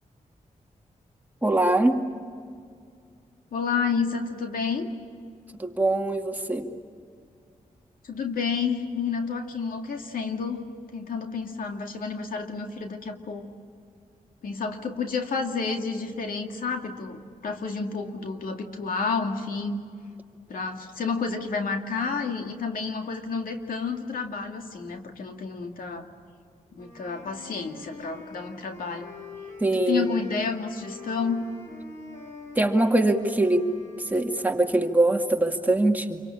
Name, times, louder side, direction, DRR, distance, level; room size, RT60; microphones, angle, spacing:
voice 1, 1.4-2.0 5.6-6.7 29.6-30.2 32.6-33.7 34.1-36.2, right 2 dB, 10° right, 2 dB, 2.3 m, -22 dB
voice 2, 3.5-4.9 8.0-10.6 10.9-13.5 14.4-19.8 20.5-26.1 26.7-29.1 29.7-31.4, left 5 dB, 80° left, 4 dB, 2.3 m, -30 dB
Wind instrument woodwind instrument, 26.8-34.7, left 3 dB, 55° left, 7.1 m, -45 dB
28.5 x 24.0 x 8.7 m, 2.3 s
cardioid pair, 85°, 14 cm